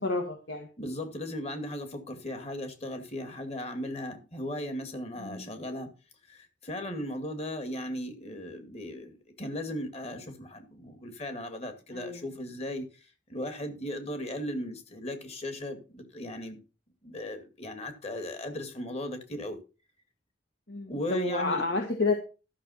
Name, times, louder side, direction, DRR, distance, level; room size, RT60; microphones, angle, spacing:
voice 1, 0.0-0.7 5.2-5.4 11.9-12.2 20.7-22.1, left 3 dB, 70° left, 1.9 m, -30 dB
voice 2, 0.8-5.9 6.3-12.9 13.3-16.6 17.0-19.6 20.9-21.6, left 1 dB, 35° left, 2.2 m, -37 dB
13.0 x 6.5 x 5.7 m
head